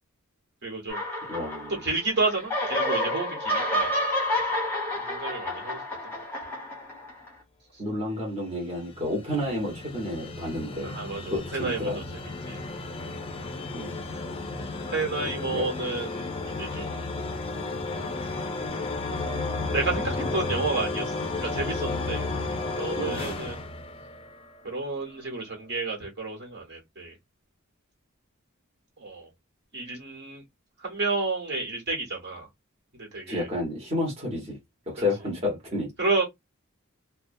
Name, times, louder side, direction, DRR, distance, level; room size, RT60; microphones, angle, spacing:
voice 1, 0.6-1.0 1.8-3.9 4.9-6.2 10.8-12.0 12.5-12.6 14.9-16.9 19.0-19.2 19.7-22.2 22.8-23.6 24.6-27.2 29.0-29.3 29.7-30.4 30.8-32.5 32.9-33.5 36.0-36.2, right 3 dB, 55° right, 1.3 m, -31 dB
sound 1, 0.9-2.0 2.3-7.3, left 1 dB, 10° left, 1.0 m, -29 dB
voice 2, 1.3-1.8 7.8-10.9 11.3-12.0 13.7-13.9 15.5-15.7 23.0-23.2 33.3-34.6 34.9-35.9, left 1 dB, 30° right, 1.1 m, -30 dB
sound 2, 8.5-24.6, left 3 dB, 25° left, 0.5 m, -33 dB
2.6 x 2.2 x 2.6 m
head